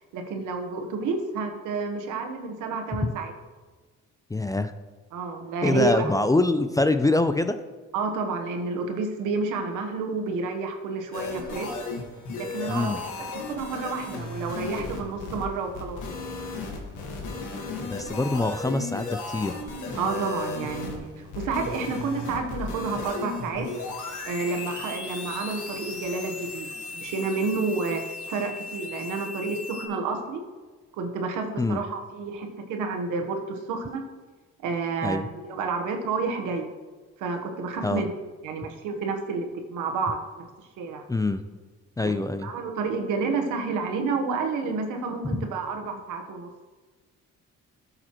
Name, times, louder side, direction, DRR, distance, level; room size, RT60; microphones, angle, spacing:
voice 1, 0.1-3.3 5.1-6.1 7.9-11.7 12.4-13.1 13.3-16.3 19.9-23.7 24.2-26.7 26.9-30.4 30.9-34.1 34.6-36.7 37.2-38.1 38.4-40.4 40.8-41.0 42.0-42.1 42.4-46.5, right 4 dB, 90° right, 5 dB, 1.2 m, -30 dB
voice 2, 4.3-4.7 5.6-7.6 12.7-13.0 17.8-19.6 31.6-31.8 35.0-35.3 37.8-38.0 41.1-41.4 42.0-42.5, left 2 dB, 10° left, 10 dB, 0.4 m, -24 dB
sound 1, 11.1-29.9, left 3 dB, 75° left, 1.7 m, -36 dB
13.0 x 6.6 x 3.0 m, 1.3 s
cardioid pair, 90°, 30 cm